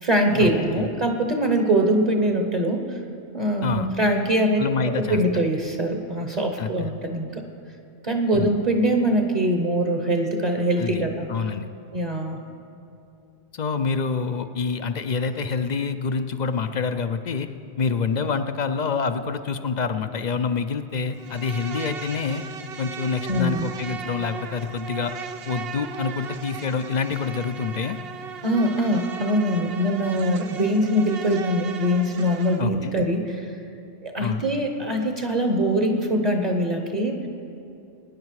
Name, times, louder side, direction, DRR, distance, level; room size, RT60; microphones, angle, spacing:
voice 1, 0.0-3.0 3.3-7.4 8.0-11.3 11.9-12.4 23.3-23.7 28.4-33.5 34.0-37.3, right 1 dB, 40° right, 3 dB, 1.1 m, -23 dB
voice 2, 4.6-5.2 6.6-7.1 8.3-8.5 10.8-11.0 11.3-11.7 13.5-17.5 17.8-22.4 22.8-25.1 25.5-28.0 32.6-32.9 34.2-34.4, left 5 dB, 50° left, 9 dB, 0.6 m, -27 dB
Insect, 21.2-32.6, right 6 dB, 65° right, 0.9 m, -37 dB
20.5 x 9.8 x 4.8 m, 2.7 s
omnidirectional pair, 1.1 m